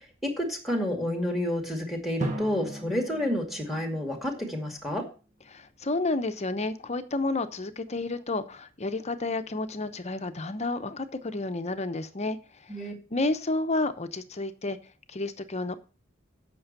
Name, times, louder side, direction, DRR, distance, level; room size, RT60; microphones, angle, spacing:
voice 1, 0.0-5.0 12.7-12.9, left 1 dB, ahead, 3 dB, 2.2 m, -30 dB
Drum, 2.2-4.9, right 2 dB, 40° right, 1.5 m, -38 dB
voice 2, 5.5-12.4 12.8-14.8 15.1-15.8, left 2 dB, 35° left, 11 dB, 0.8 m, -31 dB
8.6 x 6.2 x 6.7 m, 0.35 s
head